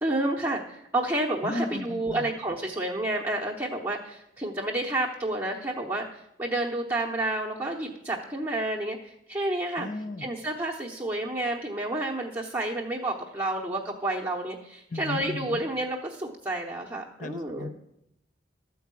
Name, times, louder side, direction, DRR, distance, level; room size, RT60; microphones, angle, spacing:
voice 1, 0.0-9.9 10.2-17.7, right 1 dB, 10° right, -2 dB, 0.9 m, -30 dB
voice 2, 1.4-2.3 9.8-10.3 14.9-15.6 17.2-17.7, left 2 dB, 45° left, 7 dB, 0.6 m, -35 dB
13.0 x 4.6 x 8.2 m, 0.80 s
head